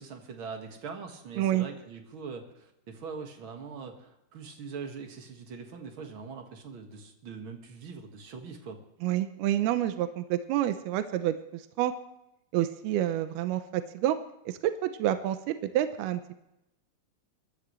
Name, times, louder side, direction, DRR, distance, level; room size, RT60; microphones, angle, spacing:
voice 1, 0.0-8.8, right 5 dB, 45° right, 3 dB, 1.7 m, -42 dB
voice 2, 9.0-11.9 12.5-14.2 14.5-14.6 14.8-16.3, right 12 dB, 75° right, 9 dB, 2.6 m, -28 dB
23.0 x 13.5 x 3.2 m, 0.88 s
omnidirectional pair, 4.8 m